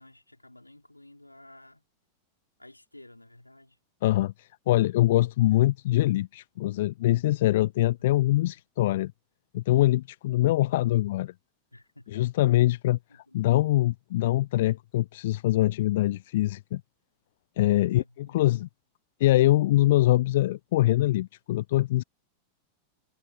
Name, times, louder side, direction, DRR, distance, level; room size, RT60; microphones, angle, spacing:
voice 1, 0.0-1.8 2.6-3.8 8.0-8.6 11.7-12.3 13.1-13.4 17.8-18.5, left 1 dB, 85° left, 5.2 m, -53 dB
voice 2, 4.0-9.1 9.5-11.3 12.1-16.8 17.6-18.7 19.2-22.0, left 15 dB, 55° left, 0.7 m, -24 dB
figure-of-eight pair, 90°, 0 cm